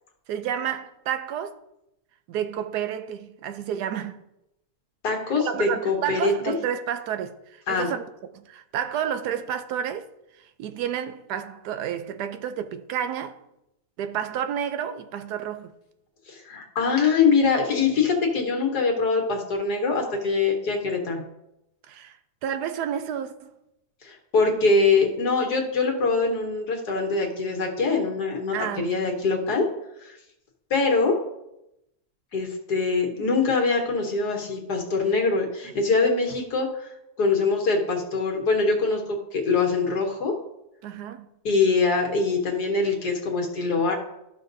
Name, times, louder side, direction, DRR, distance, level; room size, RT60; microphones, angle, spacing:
voice 1, 0.3-1.6 2.3-4.2 5.4-8.0 8.3-10.1 10.6-13.4 14.0-15.7 21.9-22.2 22.4-23.5 28.5-28.9 40.8-41.3, right 9 dB, 85° right, 1.2 m, -30 dB
voice 2, 5.0-6.5 7.7-7.9 16.3-21.2 24.0-29.6 30.0-30.2 30.7-31.1 32.3-36.9 37.2-40.3 41.4-43.9, left 4 dB, 85° left, 1.9 m, -23 dB
12.5 x 5.8 x 2.6 m
omnidirectional pair, 1.7 m